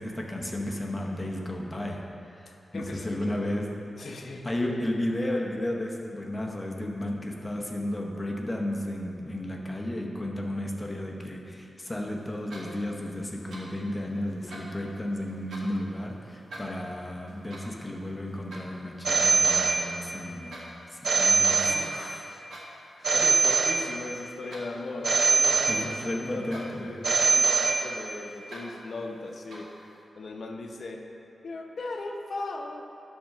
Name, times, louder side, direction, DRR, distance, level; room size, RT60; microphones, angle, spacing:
voice 1, 0.0-3.7 4.4-21.8 22.5-22.6 23.0-23.1 25.5-26.9, left 1 dB, 15° left, 0 dB, 0.8 m, -33 dB
voice 2, 2.7-3.6 4.0-4.5 21.7-22.5 23.1-31.1 31.4-32.9, left 2 dB, 55° left, 3 dB, 0.7 m, -38 dB
sound 1, 12.3-13.0 13.3-13.9 14.2-15.8 16.3-19.7 20.1-20.7 21.0-21.7 22.3-22.9 23.1-23.7 24.0-25.8 26.3-26.8 27.1-27.9 28.3-28.7 29.3-29.8, right 1 dB, 85° right, 1.7 m, -46 dB
Telephone, 19.1-20.3 21.0-22.3 23.0-24.3 25.0-26.3 27.0-28.3, right 4 dB, 55° right, 0.5 m, -24 dB
10.0 x 3.6 x 6.4 m, 2.8 s
wide cardioid pair, 155°, 0 cm